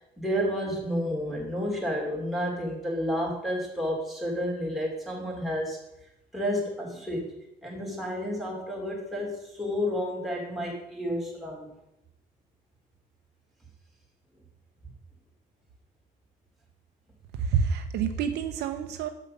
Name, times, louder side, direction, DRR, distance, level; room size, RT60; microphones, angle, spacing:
voice 1, 0.2-5.8 6.3-7.3 7.6-11.7, equal, ahead, -3 dB, 3.0 m, -30 dB
voice 2, 17.4-19.1, right 7 dB, 80° right, 7 dB, 0.7 m, -28 dB
6.8 x 6.5 x 5.3 m, 0.87 s
cardioid pair, 110°, 17 cm